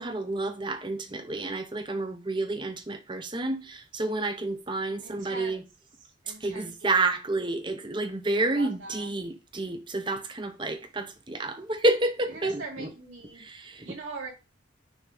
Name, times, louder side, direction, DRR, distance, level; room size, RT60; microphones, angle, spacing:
voice 1, 0.0-5.6 6.3-12.9 13.3-13.9, right 2 dB, 25° right, 0.8 m, -30 dB
voice 2, 5.0-5.7 6.0-7.1 8.4-9.1 12.3-13.4 13.8-14.3, right 3 dB, 75° right, 2.5 m, -42 dB
6.3 x 3.2 x 4.9 m
head